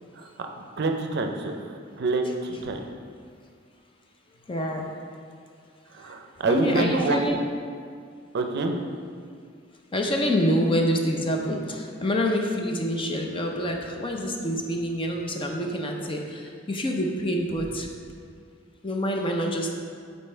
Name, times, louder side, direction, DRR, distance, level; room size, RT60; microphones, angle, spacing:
voice 1, 0.6-2.8 5.9-7.4 8.3-8.9, right 2 dB, 60° right, 4 dB, 0.5 m, -27 dB
voice 2, 4.5-4.9 6.0-6.1 6.5-7.4 9.9-17.9 18.8-19.7, equal, 25° left, 1 dB, 0.6 m, -26 dB
5.3 x 4.2 x 4.4 m, 2.2 s
head